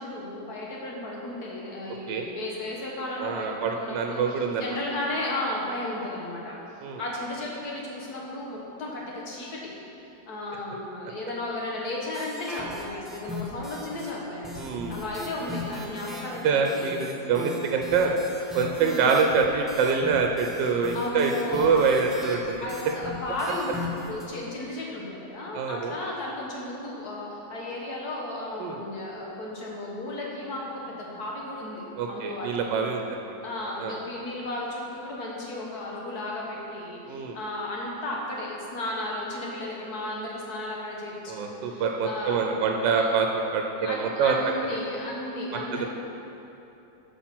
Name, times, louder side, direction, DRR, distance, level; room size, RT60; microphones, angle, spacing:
voice 1, 0.0-6.6 7.0-9.7 10.3-16.9 18.9-19.1 20.7-21.8 22.6-32.6 33.4-43.2 43.8-45.9, left 1 dB, 60° left, -3 dB, 1.9 m, -34 dB
voice 2, 3.2-4.7 6.8-7.0 14.6-15.0 16.4-18.1 18.5-22.6 25.5-25.9 28.6-28.8 32.0-33.3 33.8-33.9 37.1-37.4 41.3-44.4 45.5-45.9, right 5 dB, 90° right, 2 dB, 1.3 m, -25 dB
sound 1, 12.1-14.1 14.4-24.2, left 2 dB, ahead, 0.6 m, -39 dB
8.4 x 5.7 x 6.0 m, 3.0 s
omnidirectional pair, 1.9 m